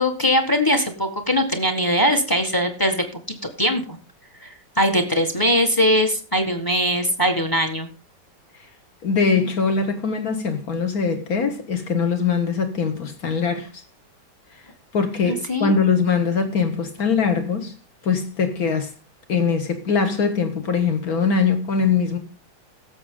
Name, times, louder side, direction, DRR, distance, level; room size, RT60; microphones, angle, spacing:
voice 1, 0.0-4.0 4.4-7.9 15.3-15.7, equal, 15° left, 1.2 m, -21 dB
voice 2, 9.0-13.7 14.9-17.7 18.0-18.9 19.3-22.2, left 5 dB, 50° left, 1.9 m, -22 dB
16.5 x 7.1 x 3.7 m
omnidirectional pair, 2.1 m